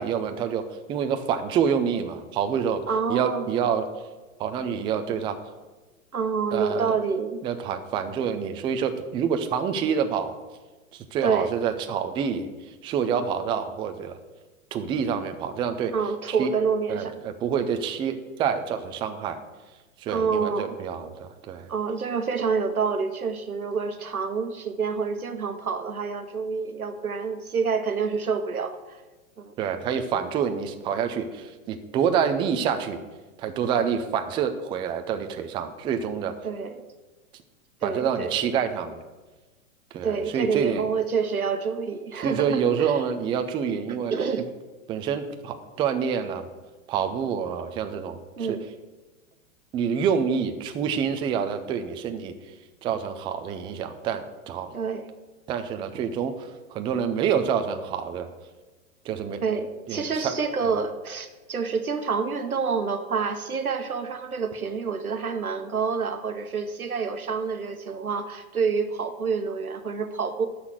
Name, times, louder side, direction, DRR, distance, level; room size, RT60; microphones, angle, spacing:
voice 1, 0.0-2.8 3.1-3.9 4.4-5.4 6.5-6.9 7.4-10.4 10.9-12.5 12.8-14.2 14.7-15.9 16.4-16.5 16.9-19.4 20.0-21.7 29.6-33.0 33.4-36.3 37.8-39.0 39.9-40.8 42.2-44.1 44.9-46.5 46.9-48.6 49.7-52.3 52.8-54.7 55.5-58.3 59.1-59.4 59.9-60.4 60.6-60.7, right 7 dB, 10° right, 8 dB, 0.4 m, -27 dB
voice 2, 2.9-3.5 6.1-7.4 11.2-11.5 15.9-17.2 20.1-20.8 21.7-29.0 29.4-29.5 36.4-36.8 37.8-38.3 40.0-43.0 43.9-44.5 48.4-48.7 54.7-55.1 59.4-70.5, right 5 dB, 90° right, 8 dB, 1.2 m, -28 dB
12.5 x 4.2 x 7.8 m, 1.2 s
hypercardioid pair, 110°, 42 cm